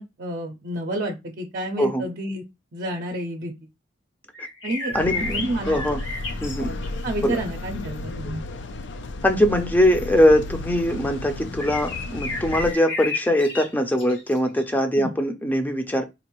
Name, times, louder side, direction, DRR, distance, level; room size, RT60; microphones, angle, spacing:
voice 1, 0.0-2.4 2.7-3.5 4.6-5.0 5.3-5.8 7.0-8.4 15.0-15.1, right 1 dB, 55° right, 0.6 m, -30 dB
sound 1, 4.3-7.1 11.6-14.7, left 3 dB, 85° left, 1.6 m, -32 dB
sound 2, 4.9-12.7, left 2 dB, 70° left, 0.5 m, -33 dB
voice 2, 4.9-5.4 5.7-6.0 6.4-6.8 7.2-7.4 9.2-16.0, equal, 10° left, 0.6 m, -21 dB
4.0 x 2.5 x 3.0 m
head